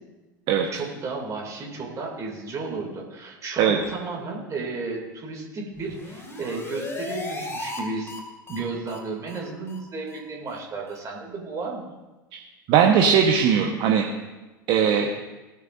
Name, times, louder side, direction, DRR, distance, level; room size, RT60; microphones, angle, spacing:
voice 1, 0.7-8.1 8.5-11.9, right 3 dB, 30° right, -1 dB, 2.6 m, -33 dB
sound 1, 5.8-7.8 8.1-8.2 8.5-8.6 8.9-9.0 9.3-9.4 9.7-9.8 10.1-10.2 10.5-10.6 10.9-11.0, left 2 dB, 20° left, 2.3 m, -36 dB
voice 2, 12.7-14.0 14.7-15.1, right 7 dB, 45° right, 2 dB, 1.1 m, -19 dB
19.0 x 9.3 x 2.6 m, 1.1 s
figure-of-eight pair, 80°, 11 cm